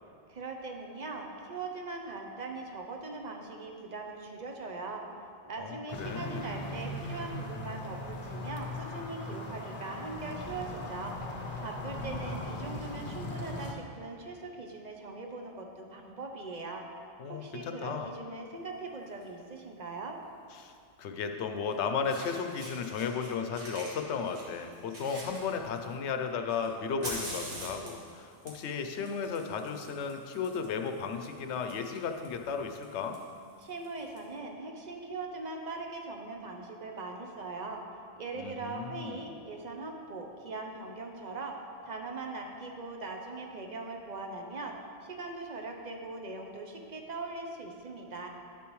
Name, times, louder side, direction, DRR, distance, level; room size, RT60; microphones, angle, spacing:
voice 1, 0.3-5.0 5.5-11.2 11.6-16.8 17.3-20.2 33.6-37.8 38.2-41.6 41.8-44.8 45.0-48.3, right 3 dB, 45° right, 2 dB, 0.8 m, -40 dB
voice 2, 5.6-6.5 17.2-18.1 20.6-20.7 21.0-33.2 38.3-39.3, left 6 dB, 80° left, 6 dB, 0.9 m, -35 dB
sound 1, 5.9-13.7, left 1 dB, 40° left, 0.7 m, -39 dB
Fire, 19.0-19.2 20.7-20.8 21.7-21.8 22.0-23.3 23.5-26.0 26.5-34.2, right 1 dB, 75° right, 2.0 m, -45 dB
10.5 x 6.9 x 3.1 m, 2.5 s
omnidirectional pair, 1.2 m